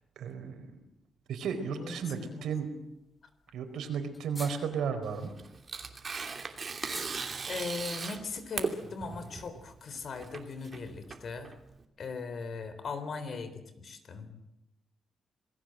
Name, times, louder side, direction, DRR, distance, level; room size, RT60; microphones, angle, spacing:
voice 1, 0.2-0.7 1.3-2.7 3.5-5.3, right 6 dB, 85° right, 7 dB, 4.5 m, -34 dB
voice 2, 1.7-2.8 7.5-11.5 12.0-14.5, left 4 dB, 50° left, 11 dB, 3.8 m, -39 dB
sound 1, 2.3-2.6 2.9-3.0 3.2-3.3 3.5-3.6 4.1-5.1 5.6-7.8, left 2 dB, 15° left, 2.7 m, -48 dB
Tearing, 5.0-11.8, right 4 dB, 35° right, 2.7 m, -38 dB
27.0 x 19.5 x 7.8 m, 0.85 s
cardioid pair, 130°, 0 cm